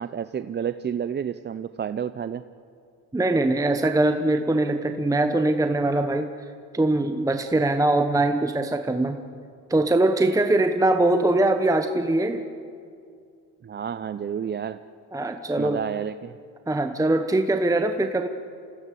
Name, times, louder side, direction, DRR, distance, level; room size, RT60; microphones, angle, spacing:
voice 1, 0.0-2.4 13.6-14.8 15.6-16.4, right 8 dB, 25° right, 12 dB, 0.6 m, -30 dB
voice 2, 3.1-6.3 6.7-9.2 9.7-12.5 15.1-15.8 16.7-18.3, right 2 dB, 10° right, 7 dB, 1.0 m, -22 dB
26.5 x 16.0 x 8.4 m, 2.4 s
supercardioid pair, 95°, 42 cm